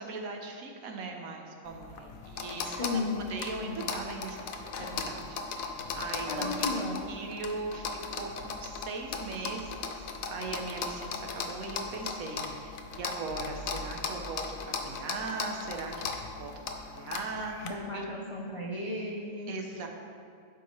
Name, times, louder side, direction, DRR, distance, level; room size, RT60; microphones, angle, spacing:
voice 1, 0.0-3.0 3.3-6.7 7.1-10.0 10.3-18.0 19.5-19.9, right 3 dB, 80° right, 3 dB, 1.2 m, -39 dB
sound 1, 1.7-17.7, left 5 dB, 75° left, 1.0 m, -38 dB
voice 2, 2.6-3.3 3.6-3.8 6.3-7.0 17.6-19.5, left 2 dB, 55° left, -2 dB, 0.3 m, -34 dB
12.0 x 4.6 x 3.1 m, 2.4 s
omnidirectional pair, 1.4 m